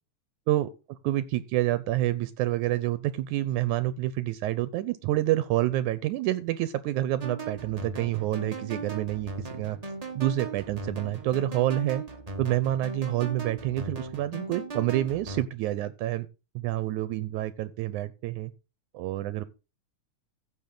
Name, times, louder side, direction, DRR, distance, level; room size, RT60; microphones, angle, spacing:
voice 1, 0.5-9.8 10.2-12.0 12.4-16.3 16.6-18.5 19.0-19.4, right 15 dB, 80° right, 2.1 m, -28 dB
sound 1, 7.2-15.4, right 3 dB, 25° right, 0.7 m, -38 dB
15.5 x 7.0 x 3.8 m
omnidirectional pair, 3.5 m